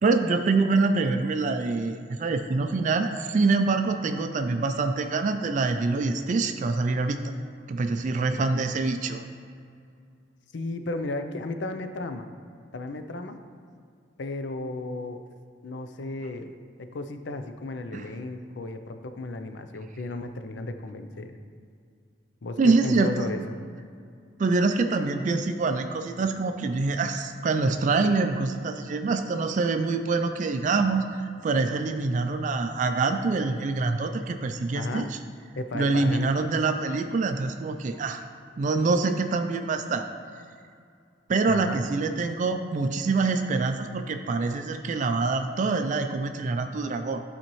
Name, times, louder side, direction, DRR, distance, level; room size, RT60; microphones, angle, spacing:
voice 1, 0.0-7.2 7.7-9.2 17.9-18.1 22.6-23.3 24.4-35.0 35.7-38.2 38.6-40.1 41.3-47.2, right 3 dB, 45° right, 7 dB, 0.3 m, -25 dB
voice 2, 10.5-12.3 12.7-13.4 14.2-15.2 15.6-21.4 22.4-23.6 34.7-35.1 35.6-36.3 41.5-41.8, left 2 dB, 80° left, 8 dB, 0.5 m, -34 dB
11.5 x 4.2 x 3.1 m, 2.3 s
head